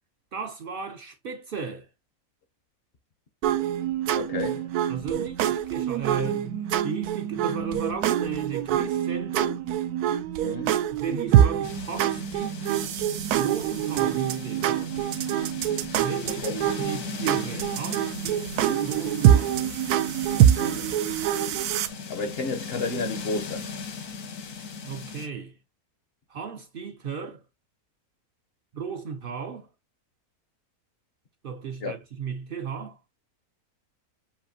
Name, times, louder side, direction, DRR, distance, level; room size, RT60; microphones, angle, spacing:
voice 1, 0.3-1.9 4.9-9.6 11.0-13.0 13.4-15.2 16.0-19.6 24.8-25.5 26.3-27.4 28.7-29.7 31.4-33.0, right 6 dB, 60° right, 0.6 m, -35 dB
sound 1, 3.4-21.9, right 11 dB, 85° right, 1.1 m, -25 dB
voice 2, 4.1-4.7 6.2-6.3 10.4-10.8 16.4-16.8 20.3-20.9 22.1-23.7 31.8-31.9, left 3 dB, 55° left, 0.7 m, -32 dB
sound 2, 11.6-25.3, left 5 dB, 75° left, 1.6 m, -38 dB
7.3 x 2.6 x 2.7 m
omnidirectional pair, 1.6 m